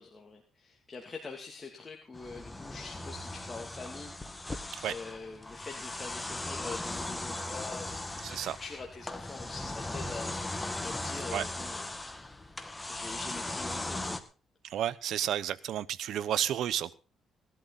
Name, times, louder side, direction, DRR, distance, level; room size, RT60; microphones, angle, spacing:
voice 1, 0.0-4.1 4.8-10.3 10.8-12.0 12.9-14.2, left 4 dB, 30° left, 2 dB, 2.8 m, -44 dB
sound 1, 2.1-14.2, left 2 dB, 15° left, 1.9 m, -38 dB
voice 2, 8.2-8.6 11.3-11.4 14.6-16.9, right 11 dB, 75° right, 16 dB, 0.9 m, -31 dB
18.5 x 12.0 x 4.2 m, 0.34 s
cardioid pair, 90°, 0 cm